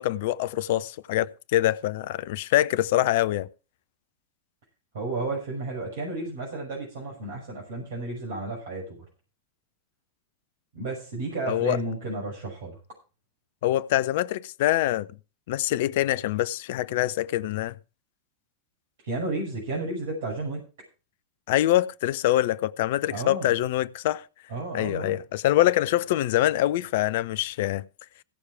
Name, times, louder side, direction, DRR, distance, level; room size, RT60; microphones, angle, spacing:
voice 1, 0.0-3.5 11.5-11.8 13.6-15.1 15.5-17.7 21.5-24.2 24.7-27.8, left 14 dB, 50° left, 0.6 m, -24 dB
voice 2, 4.9-9.0 10.7-12.8 19.0-20.6 23.1-23.5 24.5-25.2, right 2 dB, 60° right, 5.9 m, -32 dB
16.5 x 6.5 x 4.9 m
figure-of-eight pair, 90°, 0 cm